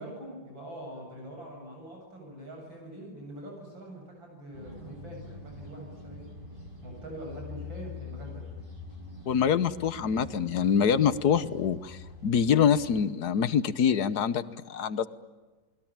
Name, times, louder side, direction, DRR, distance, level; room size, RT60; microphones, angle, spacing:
voice 1, 0.0-6.3 6.8-8.5, right 1 dB, 85° right, 1 dB, 8.7 m, -43 dB
sound 1, 4.5-13.0, left 4 dB, 25° right, 6.2 m, -45 dB
voice 2, 9.3-15.1, left 7 dB, 60° left, 14 dB, 1.5 m, -25 dB
29.0 x 20.5 x 8.8 m, 1.3 s
omnidirectional pair, 2.1 m